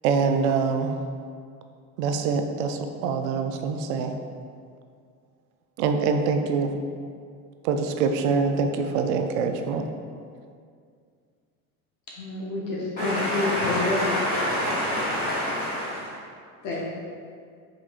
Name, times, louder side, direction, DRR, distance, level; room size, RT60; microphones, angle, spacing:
voice 1, 0.0-1.0 2.0-4.2 5.8-6.7 7.6-9.9, right 5 dB, 65° right, 6 dB, 0.5 m, -24 dB
voice 2, 12.2-14.0 16.6-16.9, left 2 dB, 50° left, -4 dB, 0.8 m, -28 dB
voice 3, 13.0-16.1, left 1 dB, 20° left, -10 dB, 0.9 m, -27 dB
5.0 x 3.0 x 2.4 m, 2.2 s
hypercardioid pair, 95°, 44 cm